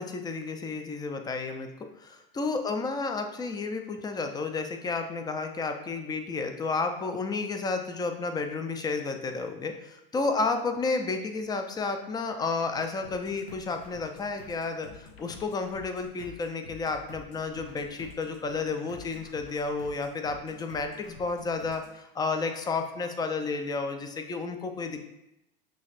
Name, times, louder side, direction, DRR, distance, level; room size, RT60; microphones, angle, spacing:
voice 1, 0.0-1.7 2.0-25.0, left 4 dB, 15° left, 6 dB, 0.4 m, -31 dB
sound 1, 13.0-21.9, left 4 dB, 85° left, 0.8 m, -50 dB
6.2 x 3.1 x 2.5 m, 0.87 s
hypercardioid pair, 90°, 29 cm